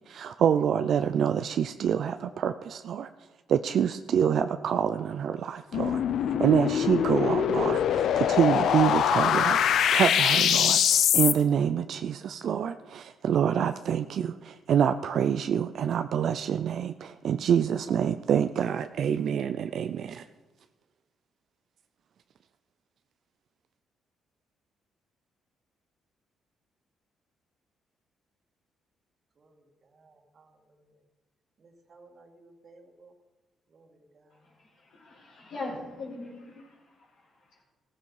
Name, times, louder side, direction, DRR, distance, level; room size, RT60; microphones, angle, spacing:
voice 1, 0.1-3.1 3.5-6.0 6.4-9.6 9.9-20.2, right 8 dB, 65° right, 10 dB, 0.4 m, -26 dB
sound 1, 5.7-11.3, left 9 dB, 70° left, 0.7 m, -23 dB
voice 2, 29.4-31.0 31.6-33.1 33.7-34.5, right 3 dB, 45° right, 3 dB, 2.2 m, -58 dB
voice 3, 34.3-37.6, left 2 dB, 90° left, -8 dB, 5.5 m, -42 dB
15.0 x 14.5 x 4.8 m, 1.2 s
cardioid pair, 90°, 0 cm